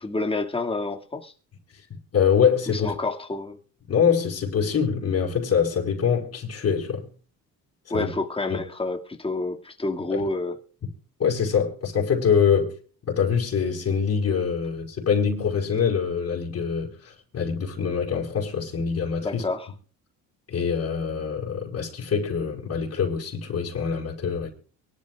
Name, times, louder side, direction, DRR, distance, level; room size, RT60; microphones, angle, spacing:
voice 1, 0.0-1.3 2.7-3.6 7.9-10.6 19.2-19.7, left 2 dB, 15° left, 2.5 m, -29 dB
voice 2, 1.9-2.9 3.9-7.1 7.9-8.1 8.5-8.6 10.1-10.3 11.2-12.7 13.1-19.4 20.5-24.5, left 6 dB, 45° left, 5.5 m, -24 dB
24.0 x 13.0 x 2.5 m
cardioid pair, 100°, 34 cm